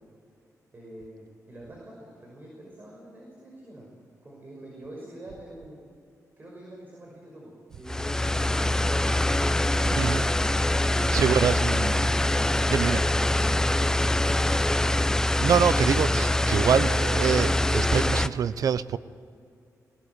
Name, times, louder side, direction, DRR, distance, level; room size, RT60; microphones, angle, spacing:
voice 1, 0.7-1.9 2.2-3.9 4.2-5.9 6.4-8.9 10.7-11.3 13.5-14.2, right 1 dB, 30° right, -2 dB, 5.9 m, -46 dB
sound 1, 7.9-18.3, left 1 dB, 10° left, 0.7 m, -24 dB
voice 2, 9.8-10.3 11.1-12.3 12.7-13.1 15.4-19.0, right 7 dB, 75° right, 15 dB, 0.7 m, -25 dB
21.0 x 19.0 x 8.0 m, 2.4 s
wide cardioid pair, 120°, 6 cm